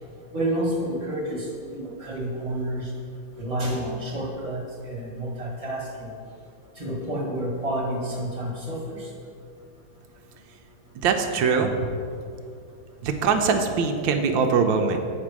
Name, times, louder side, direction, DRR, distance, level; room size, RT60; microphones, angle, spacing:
voice 1, 0.3-2.9 3.4-6.1 6.8-9.1, right 1 dB, 20° right, -3 dB, 1.2 m, -29 dB
voice 2, 11.0-11.9 13.0-15.0, right 5 dB, 75° right, 5 dB, 1.3 m, -22 dB
8.6 x 5.1 x 6.0 m, 2.4 s
omnidirectional pair, 2.4 m